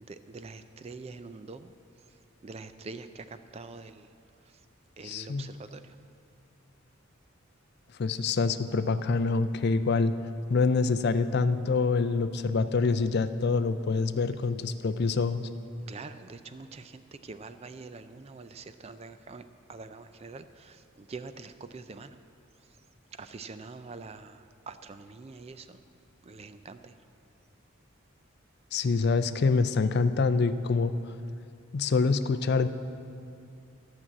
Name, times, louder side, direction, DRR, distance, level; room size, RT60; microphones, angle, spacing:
voice 1, 0.1-1.7 2.4-3.2 3.5-4.1 5.0-5.8 15.9-19.4 19.7-20.8 21.1-22.1 23.2-24.4 24.7-25.8 26.3-26.9, right 4 dB, 30° right, 11 dB, 0.4 m, -44 dB
voice 2, 5.0-5.5 8.0-10.1 10.5-15.5 28.7-30.9 31.7-32.7, left 4 dB, 50° left, 12 dB, 0.4 m, -26 dB
12.5 x 6.1 x 8.6 m, 2.4 s
head